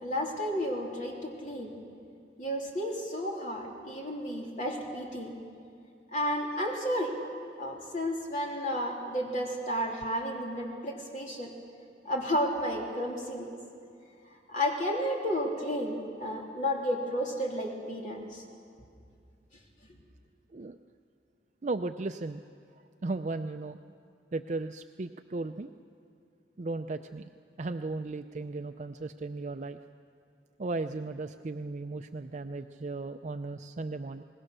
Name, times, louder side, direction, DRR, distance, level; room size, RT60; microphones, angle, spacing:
voice 1, 0.0-1.7 2.4-5.3 6.1-7.1 7.6-11.5 12.0-13.5 14.5-18.4, equal, 45° left, -1 dB, 3.3 m, -32 dB
voice 2, 21.6-22.4 23.0-23.8 24.3-25.7 26.6-27.3 27.6-29.8 30.6-34.2, right 3 dB, 40° right, 8 dB, 0.4 m, -36 dB
26.5 x 20.0 x 6.7 m, 2.4 s
head